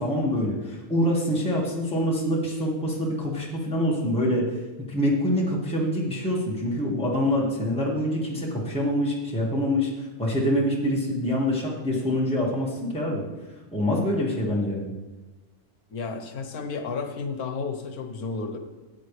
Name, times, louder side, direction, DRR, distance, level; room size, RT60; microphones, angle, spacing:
voice 1, 0.0-4.5 4.9-13.2 13.7-14.9, equal, 5° left, -4 dB, 1.8 m, -25 dB
voice 2, 15.9-18.6, left 4 dB, 75° left, 6 dB, 1.5 m, -32 dB
14.0 x 8.6 x 3.3 m, 1.2 s
omnidirectional pair, 1.6 m